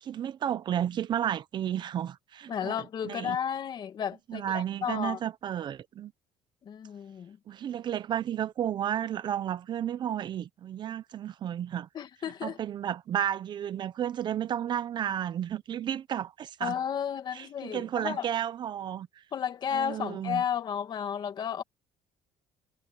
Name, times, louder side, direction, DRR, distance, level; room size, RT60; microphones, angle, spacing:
voice 1, 0.0-3.4 4.3-6.1 7.5-11.9 12.4-16.8 17.3-19.1 19.7-20.4, right 10 dB, 45° right, 0.7 m, -32 dB
voice 2, 2.5-5.2 6.6-7.4 11.9-12.6 16.6-18.3 19.3-21.6, left 8 dB, 40° left, 2.0 m, -33 dB
cardioid pair, 135°, 11 cm